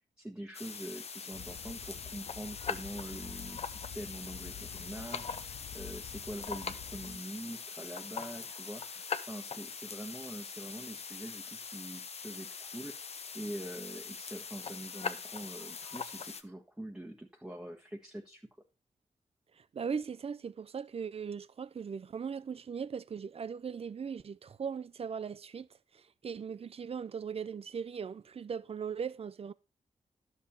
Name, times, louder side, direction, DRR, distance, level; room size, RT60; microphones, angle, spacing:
voice 1, 0.2-18.5, right 1 dB, 5° right, 1.2 m, -44 dB
sound 1, 0.5-16.4, left 5 dB, 55° left, 0.9 m, -42 dB
sound 2, 1.3-7.2, left 10 dB, 90° left, 0.7 m, -49 dB
voice 2, 19.6-25.7 25.9-29.5, right 6 dB, 50° right, 0.6 m, -39 dB
12.0 x 7.0 x 4.2 m
wide cardioid pair, 135°, 13 cm